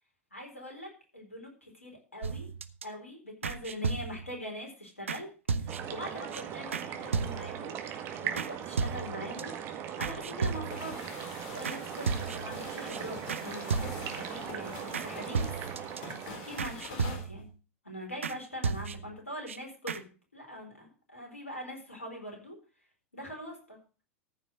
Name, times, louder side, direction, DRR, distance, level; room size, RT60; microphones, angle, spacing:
voice 1, 0.3-2.5 2.8-5.3 5.5-7.8 8.2-9.5 10.0-11.1 11.5-15.5 16.2-17.5 17.8-22.6 23.1-24.0, equal, 80° left, 1 dB, 4.2 m, -42 dB
sound 1, 2.2-2.8 3.4-4.4 5.1-5.2 5.5-6.0 6.3-6.4 6.7-6.9 7.1-7.7 8.4-8.5 8.8-9.4 10.0-10.9 11.6-11.8 12.1-12.6 12.9-13.0 13.3-13.4 13.7-14.2 14.9-15.1 15.3-16.0 16.6-17.5 18.2-18.4 18.6-19.2 19.5-19.6 19.9-20.0, right 5 dB, 70° right, 0.8 m, -34 dB
sound 2, 5.7-16.9, right 9 dB, 35° right, 1.9 m, -40 dB
sound 3, 10.7-17.3, left 4 dB, 45° left, 3.4 m, -46 dB
14.5 x 6.1 x 6.1 m, 0.36 s
figure-of-eight pair, 90°, 7 cm